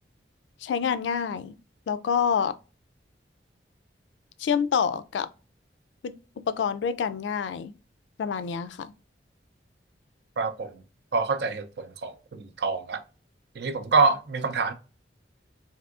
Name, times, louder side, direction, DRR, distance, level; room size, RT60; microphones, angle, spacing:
voice 1, 0.6-1.6 1.9-2.5 4.4-5.3 6.0-6.1 6.5-7.7 8.2-8.9, left 7 dB, 85° left, 0.3 m, -27 dB
voice 2, 10.4-10.7 11.1-12.1 12.6-13.0 13.6-14.7, right 4 dB, 65° right, 0.5 m, -25 dB
3.5 x 2.6 x 2.4 m
head